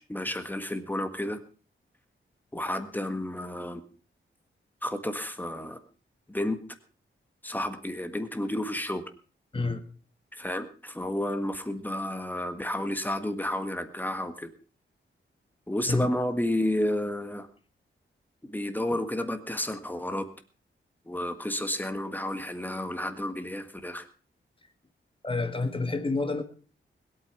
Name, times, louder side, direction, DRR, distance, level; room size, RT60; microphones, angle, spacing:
voice 1, 0.0-1.4 2.5-3.8 4.8-5.8 6.3-6.6 7.4-9.0 10.3-14.5 15.7-17.5 18.4-20.3 21.1-24.0, left 1 dB, 10° left, 9 dB, 1.6 m, -31 dB
voice 2, 25.2-26.4, left 3 dB, 25° left, 9 dB, 1.7 m, -28 dB
21.0 x 8.9 x 5.9 m, 0.39 s
wide cardioid pair, 170°, 21 cm